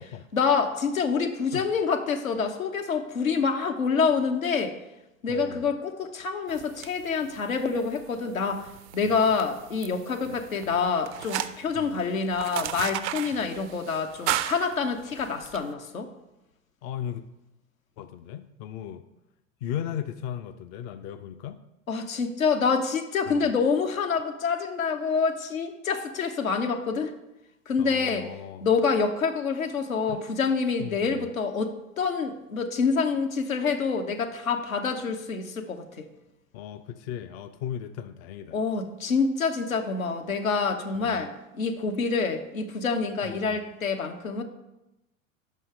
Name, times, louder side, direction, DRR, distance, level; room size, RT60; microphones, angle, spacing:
voice 1, 0.3-4.8 5.2-8.7 8.9-16.1 21.9-27.1 27.7-28.3 28.6-36.0 38.5-44.4, left 5 dB, 85° left, 4 dB, 0.9 m, -27 dB
voice 2, 5.3-5.7 9.1-9.2 10.2-10.4 11.7-11.9 16.8-17.3 18.0-19.1 19.6-21.6 23.3-23.5 27.8-28.6 30.1-30.2 30.8-31.3 36.5-38.6 41.0-41.2 43.2-43.6, left 10 dB, 50° left, 10 dB, 0.5 m, -37 dB
sound 1, 6.5-15.6, right 13 dB, 60° right, 0.5 m, -36 dB
5.7 x 5.4 x 6.4 m, 0.92 s
figure-of-eight pair, 80°, 40 cm